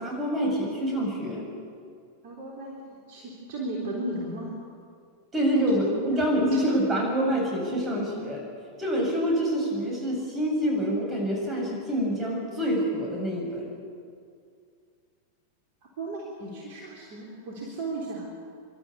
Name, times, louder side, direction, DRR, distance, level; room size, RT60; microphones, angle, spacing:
voice 1, 0.0-1.5 5.3-8.4 8.8-13.7, equal, 20° right, -1 dB, 7.4 m, -26 dB
voice 2, 2.2-4.6 5.7-6.3 6.5-6.6 16.0-18.3, right 2 dB, 50° right, -3 dB, 3.7 m, -36 dB
27.5 x 12.5 x 8.6 m, 2.3 s
figure-of-eight pair, 90°, 0 cm